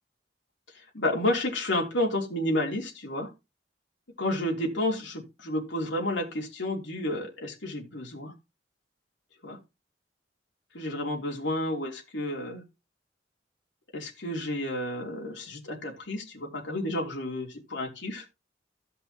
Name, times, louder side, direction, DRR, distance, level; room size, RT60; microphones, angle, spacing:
voice 1, 0.9-3.3 4.2-8.3 9.4-9.6 10.7-12.6 13.9-18.2, left 1 dB, 90° left, 0 dB, 3.1 m, -31 dB
16.0 x 5.6 x 2.9 m, 0.25 s
head